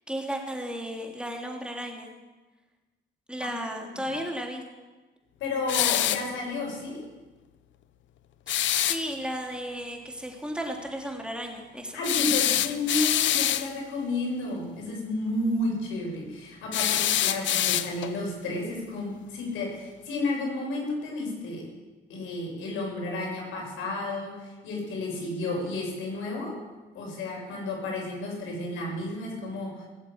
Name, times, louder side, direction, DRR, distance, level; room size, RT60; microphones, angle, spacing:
voice 1, 0.1-2.1 3.3-4.6 8.7-12.0, equal, 5° right, 1 dB, 3.3 m, -34 dB
voice 2, 3.4-4.1 5.4-7.0 11.9-21.7 22.1-26.6 26.9-29.9, left 2 dB, 90° left, -1 dB, 6.2 m, -32 dB
sound 1, 5.7-6.3 8.5-9.0 12.0-13.7 16.7-18.2, left 12 dB, 70° left, 0.8 m, -25 dB
19.5 x 7.9 x 8.8 m, 1.2 s
cardioid pair, 90°, 20 cm